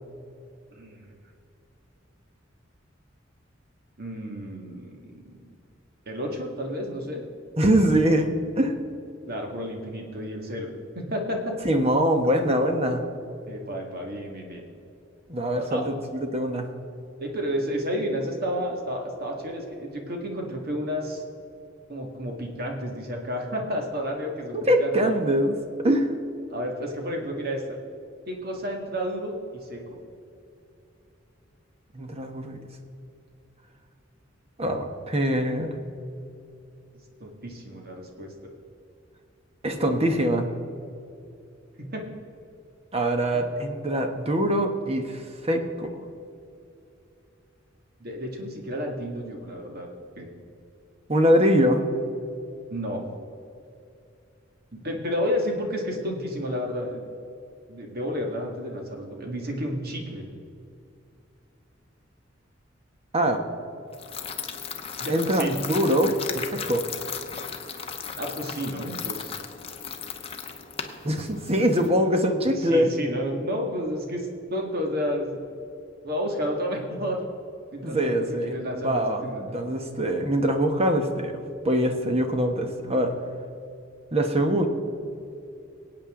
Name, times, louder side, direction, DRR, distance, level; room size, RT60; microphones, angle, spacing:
voice 1, 0.7-1.1 4.0-5.4 6.1-7.2 9.3-10.7 11.0-11.6 13.5-14.6 15.5-15.8 17.2-21.2 21.9-25.1 26.5-27.8 28.3-30.0 37.2-38.3 41.8-42.0 43.3-43.4 48.0-49.9 50.2-50.3 52.7-53.0 54.7-57.0 57.7-60.3 65.0-65.6 68.2-69.4 72.6-75.4 76.0-77.2 77.7-79.6, equal, 55° right, 1 dB, 2.0 m, -31 dB
voice 2, 7.6-8.8 11.6-13.0 15.3-16.7 24.5-26.1 31.9-32.6 34.6-35.8 39.6-40.5 42.9-45.9 51.1-51.9 63.1-63.4 65.1-66.8 71.0-72.9 77.8-79.2 79.5-83.1 84.1-84.7, equal, 30° right, 5 dB, 1.2 m, -23 dB
sound 1, 63.9-71.9, left 7 dB, 30° left, 0.8 m, -36 dB
22.5 x 8.8 x 3.8 m, 2.6 s
head